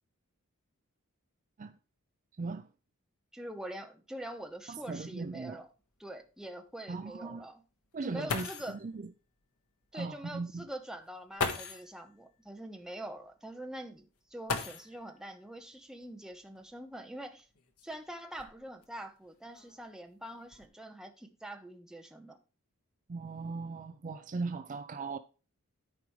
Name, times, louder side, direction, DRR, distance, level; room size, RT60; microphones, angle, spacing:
voice 1, 3.3-5.7 6.0-7.6 8.0-8.8 9.9-17.5 17.8-22.4, right 1 dB, 5° right, 1.0 m, -44 dB
sound 1, 4.4-4.5 4.9-5.0 5.6-5.7 7.9-8.0 8.3-8.8 10.1-10.2 11.3-11.9 14.4-15.2 16.6-16.7 17.4-18.8 19.5-19.9 20.3-20.7, left 4 dB, 90° left, 1.3 m, -37 dB
voice 2, 4.7-5.7 6.9-7.5 7.9-9.1 9.9-10.6 23.1-25.2, right 3 dB, 35° right, 0.4 m, -38 dB
13.0 x 4.9 x 3.1 m
head